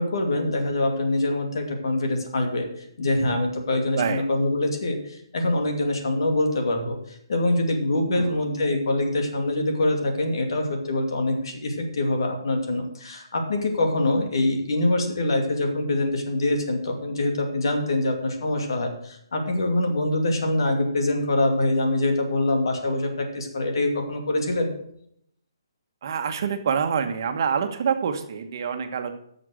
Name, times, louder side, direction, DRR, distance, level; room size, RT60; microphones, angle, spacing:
voice 1, 0.0-7.0 7.3-24.7, left 2 dB, 65° left, 4 dB, 2.5 m, -24 dB
voice 2, 26.0-29.2, right 7 dB, 50° right, 6 dB, 1.3 m, -26 dB
11.0 x 6.6 x 6.4 m, 0.71 s
hypercardioid pair, 150°, 3 cm